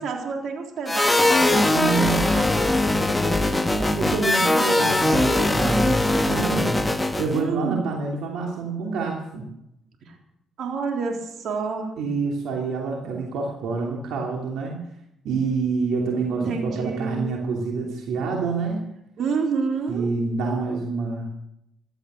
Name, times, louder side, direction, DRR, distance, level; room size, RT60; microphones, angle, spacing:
voice 1, 0.0-3.6 7.3-8.0 10.1-10.2 10.6-11.9 16.3-17.2 19.2-20.1, right 4 dB, 65° right, 2 dB, 3.7 m, -29 dB
sound 1, 0.9-7.4, left 2 dB, 10° left, 1.3 m, -21 dB
voice 2, 1.7-2.6 3.7-6.8 7.2-9.5 12.0-14.8 15.2-18.8 19.9-21.3, right 4 dB, 85° right, -1 dB, 3.0 m, -27 dB
16.5 x 12.0 x 6.4 m, 0.80 s
cardioid pair, 90°, 0 cm